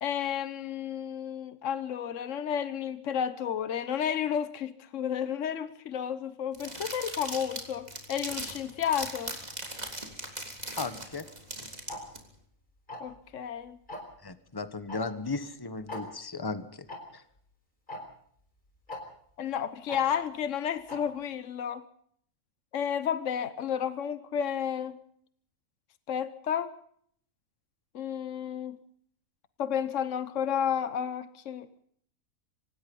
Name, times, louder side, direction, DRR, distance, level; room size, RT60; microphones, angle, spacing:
voice 1, 0.0-9.3 13.0-13.8 19.4-21.8 22.7-25.0 26.1-26.7 27.9-28.8 29.6-31.9, left 8 dB, 65° left, 1.4 m, -32 dB
sound 1, 6.5-12.2, right 1 dB, 30° right, 3.6 m, -39 dB
voice 2, 10.8-11.2 14.2-16.9 17.1-17.2, left 3 dB, 15° left, 1.3 m, -36 dB
Tick-tock, 11.9-12.0 12.9-13.2 13.9-14.1 14.9-15.0 15.3-15.4 15.9-16.0 16.9-17.0 17.9-18.0 18.9-19.0 19.9-20.0 20.9-21.0, left 1 dB, 35° left, 5.2 m, -38 dB
25.0 x 19.0 x 5.5 m
omnidirectional pair, 1.4 m